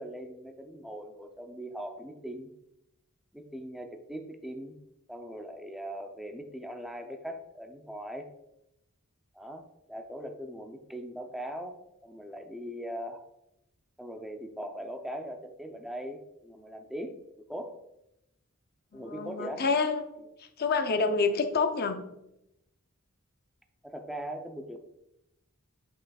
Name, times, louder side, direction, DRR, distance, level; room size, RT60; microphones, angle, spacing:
voice 1, 0.0-2.5 3.3-4.8 5.1-8.3 9.3-13.3 14.0-17.2 17.5-17.8 18.9-19.6 23.8-24.8, equal, ahead, 4 dB, 0.5 m, -40 dB
voice 2, 18.9-20.0 20.6-22.0, left 4 dB, 45° left, 8 dB, 0.6 m, -27 dB
7.3 x 6.1 x 2.3 m, 0.85 s
head